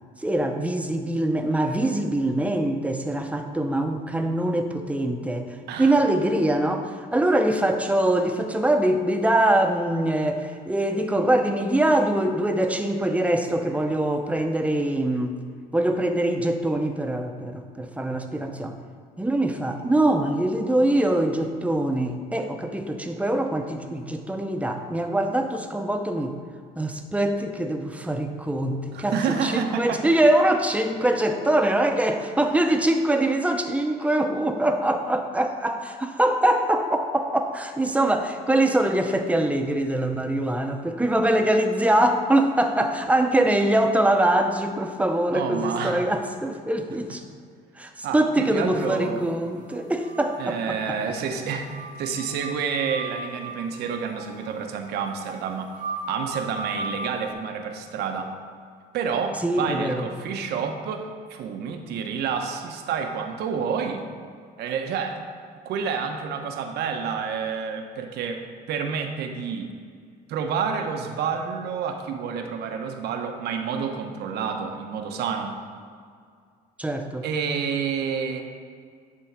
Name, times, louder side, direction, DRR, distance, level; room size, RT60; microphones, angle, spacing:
voice 1, 0.2-15.4 15.7-18.8 19.2-26.4 26.8-47.2 47.8-51.2 59.4-60.1 76.8-77.3, right 1 dB, 10° right, 5 dB, 0.8 m, -23 dB
voice 2, 28.9-30.0 45.3-46.0 48.0-49.2 50.4-55.7 56.1-58.3 58.9-64.0 64.6-65.2 65.6-69.7 70.3-75.5 77.2-78.4, right 6 dB, 75° right, 5 dB, 1.0 m, -29 dB
sound 1, 49.7-50.7 51.0-51.1 51.3-57.3, right 2 dB, 50° right, 0.7 m, -37 dB
11.5 x 3.8 x 6.0 m, 2.2 s
cardioid pair, 110°, 17 cm